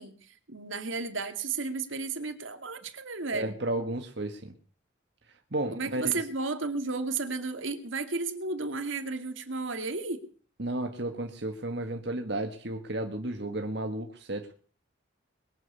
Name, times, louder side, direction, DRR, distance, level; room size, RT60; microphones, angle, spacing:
voice 1, 0.0-3.5 5.7-10.2, right 4 dB, 75° right, 7 dB, 2.3 m, -33 dB
voice 2, 3.3-4.5 5.5-6.2 10.6-14.5, right 1 dB, 55° right, 4 dB, 1.7 m, -33 dB
22.0 x 7.6 x 8.3 m, 0.43 s
head